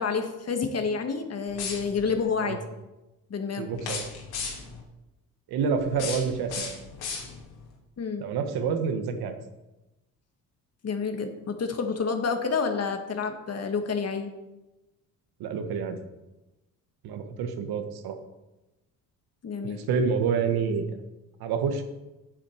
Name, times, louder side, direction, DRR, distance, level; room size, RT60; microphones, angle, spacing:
voice 1, 0.0-2.6 3.3-3.7 8.0-8.3 10.8-14.3 19.4-19.8, left 5 dB, 40° left, 6 dB, 1.7 m, -29 dB
sound 1, 1.5-2.2 3.7-4.8 5.8-7.6, left 5 dB, 90° left, 3.0 m, -36 dB
voice 2, 3.6-4.0 5.5-6.8 8.2-9.3 15.4-16.0 17.0-18.1 19.6-20.9 21.4-21.8, right 6 dB, 85° right, 6 dB, 1.5 m, -28 dB
9.0 x 7.6 x 7.2 m, 1.0 s
cardioid pair, 100°, 37 cm